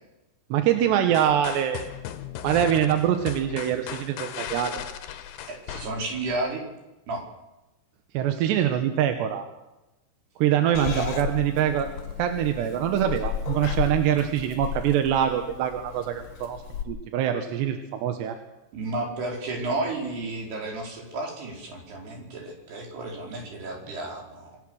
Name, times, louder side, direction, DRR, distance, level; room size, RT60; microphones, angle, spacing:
voice 1, 0.5-1.9 2.4-4.8 8.1-9.5 10.4-11.9 12.2-18.4, right 10 dB, 70° right, 6 dB, 3.0 m, -24 dB
sound 1, 1.1-6.4, left 10 dB, 70° left, 2.7 m, -37 dB
voice 2, 5.5-6.6 7.1-7.2 10.7-11.2 18.7-24.6, right 2 dB, 55° right, 0 dB, 6.2 m, -32 dB
Purr / Meow, 10.7-16.8, left 9 dB, 55° left, 2.7 m, -34 dB
26.0 x 18.0 x 6.4 m, 0.99 s
omnidirectional pair, 5.7 m